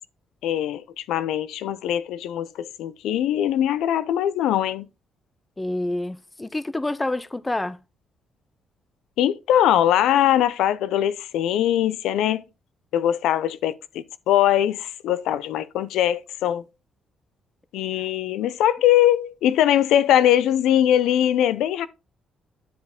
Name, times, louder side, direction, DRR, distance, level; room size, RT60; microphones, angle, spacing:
voice 1, 0.4-4.9 9.2-12.4 12.9-16.6 17.7-21.9, left 11 dB, 85° left, 0.4 m, -21 dB
voice 2, 5.6-7.8, left 2 dB, 15° left, 0.4 m, -28 dB
10.0 x 4.8 x 3.5 m
cardioid pair, 90°, 0 cm